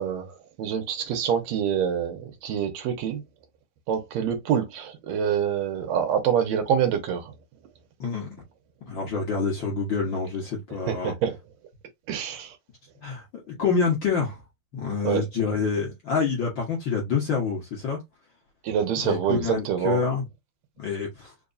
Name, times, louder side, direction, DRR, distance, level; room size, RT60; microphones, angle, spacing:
voice 1, 0.0-3.2 3.9-7.3 10.9-11.4 12.1-12.6 15.0-15.2 18.6-20.0, right 8 dB, 75° right, 1.9 m, -26 dB
voice 2, 8.9-11.1 13.0-14.4 14.7-18.0 19.0-20.2 20.8-21.3, left 5 dB, 50° left, 1.5 m, -27 dB
4.7 x 2.9 x 2.6 m
omnidirectional pair, 3.4 m